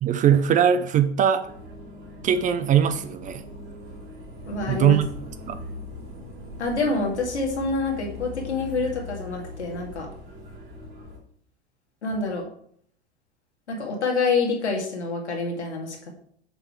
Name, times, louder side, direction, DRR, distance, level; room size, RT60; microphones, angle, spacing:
voice 1, 0.0-1.5 2.2-3.4 4.7-5.1 5.5-5.6, right 9 dB, 25° right, 10 dB, 0.5 m, -20 dB
sound 1, 1.4-11.2, left 2 dB, 65° right, 3.3 m, -40 dB
voice 2, 4.5-5.0 6.6-10.1 12.0-12.5 13.7-16.1, left 3 dB, 80° left, 0 dB, 2.3 m, -27 dB
6.9 x 5.5 x 4.6 m, 0.64 s
figure-of-eight pair, 85°, 34 cm